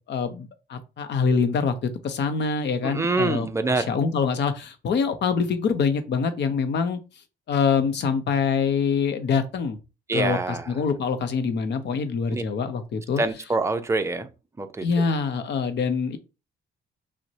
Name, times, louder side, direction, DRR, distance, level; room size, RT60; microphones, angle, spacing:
voice 1, 0.1-7.0 7.5-9.8 10.1-13.2 14.8-16.2, left 5 dB, 55° left, 0.7 m, -25 dB
voice 2, 2.8-3.9 10.1-10.7 12.3-12.4 13.2-14.3 14.6-14.9, right 3 dB, 15° right, 0.5 m, -25 dB
5.9 x 2.1 x 2.7 m
cardioid pair, 110°, 21 cm